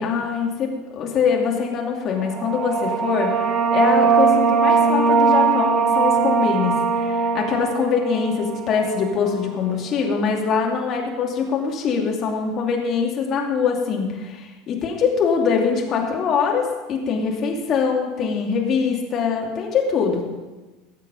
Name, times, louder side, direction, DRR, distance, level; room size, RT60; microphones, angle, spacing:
voice 1, 0.0-3.4 3.7-20.3, left 6 dB, 40° left, 0 dB, 2.6 m, -23 dB
sound 1, 2.2-9.5, right 5 dB, 40° right, 1.0 m, -20 dB
19.0 x 7.5 x 5.3 m, 1.2 s
figure-of-eight pair, 75°, 0 cm